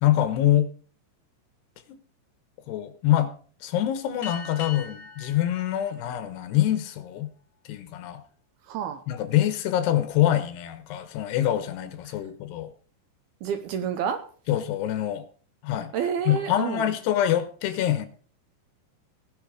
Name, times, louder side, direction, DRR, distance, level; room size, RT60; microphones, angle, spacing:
voice 1, 0.0-0.7 2.7-3.3 3.6-7.3 7.7-8.2 9.1-12.7 14.5-15.2 15.6-15.9 16.3-18.1, left 12 dB, 75° left, 3.0 m, -25 dB
sound 1, 4.2-7.2, left 6 dB, 40° left, 2.6 m, -42 dB
voice 2, 8.7-9.0 13.4-14.2 15.9-16.9, right 7 dB, 75° right, 2.5 m, -29 dB
18.5 x 6.6 x 4.9 m
omnidirectional pair, 5.1 m